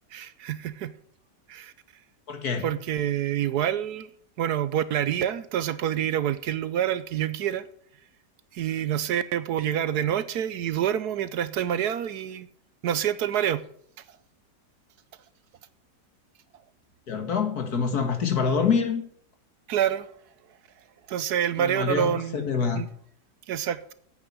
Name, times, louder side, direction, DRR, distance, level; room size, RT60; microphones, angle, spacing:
voice 1, 0.1-0.9 1.5-1.7 2.6-4.1 4.4-7.6 8.5-12.5 12.8-13.6 19.7-20.1 21.1-22.4 22.8-22.9 23.5-23.9, right 10 dB, 70° right, 1.2 m, -27 dB
voice 2, 2.3-2.7 17.1-19.0 21.6-22.8, left 6 dB, 60° left, 2.2 m, -26 dB
9.0 x 8.9 x 9.7 m
omnidirectional pair, 1.8 m